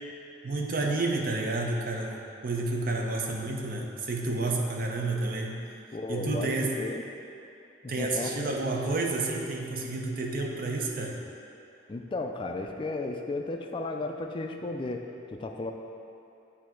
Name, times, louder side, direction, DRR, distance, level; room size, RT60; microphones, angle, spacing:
voice 1, 0.4-5.6 6.1-6.7 7.9-11.2, right 2 dB, 50° right, 0 dB, 0.6 m, -30 dB
voice 2, 5.9-7.0 7.8-8.5 11.9-15.7, left 2 dB, 25° left, 3 dB, 0.3 m, -34 dB
8.4 x 2.8 x 4.5 m, 2.7 s
head